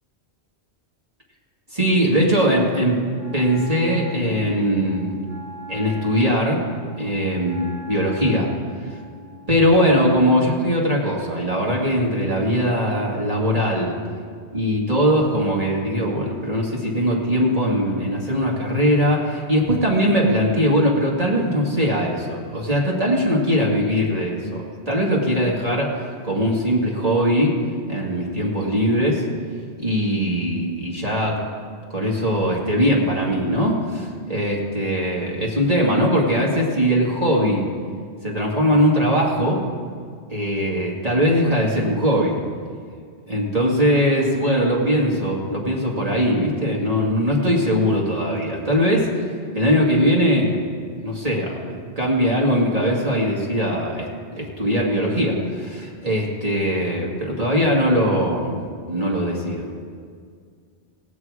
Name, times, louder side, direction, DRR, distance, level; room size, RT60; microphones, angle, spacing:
voice 1, 1.7-3.0 3.3-5.2 5.7-6.6 7.0-8.5 8.9-9.0 9.5-13.9 14.5-27.6 27.9-29.2 29.8-31.5 31.9-37.7 38.2-39.6 40.3-42.4 43.3-49.2 49.5-50.7 51.0-59.7, equal, 35° right, -3 dB, 2.0 m, -21 dB
Wind instrument woodwind instrument, 3.1-10.4, left 1 dB, 30° left, 3.1 m, -41 dB
17.5 x 8.8 x 4.8 m, 2.1 s
omnidirectional pair, 1.2 m